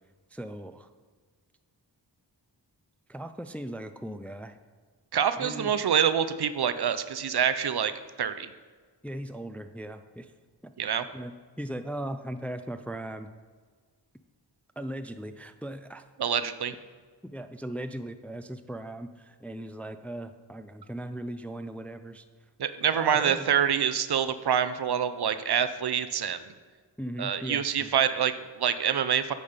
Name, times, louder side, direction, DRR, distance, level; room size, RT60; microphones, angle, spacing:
voice 1, 0.3-0.9 3.1-4.6 5.4-5.7 9.0-10.3 10.6-10.7 11.1-13.3 14.8-16.0 17.2-22.2 22.9-23.5 27.0-27.9, right 1 dB, 5° left, 9 dB, 0.3 m, -38 dB
voice 2, 5.1-7.9 8.2-8.5 10.8-11.0 16.2-16.7 22.6-26.4 27.2-29.3, right 8 dB, 60° right, 11 dB, 0.5 m, -26 dB
8.6 x 4.1 x 5.1 m, 1.5 s
cardioid pair, 40°, 43 cm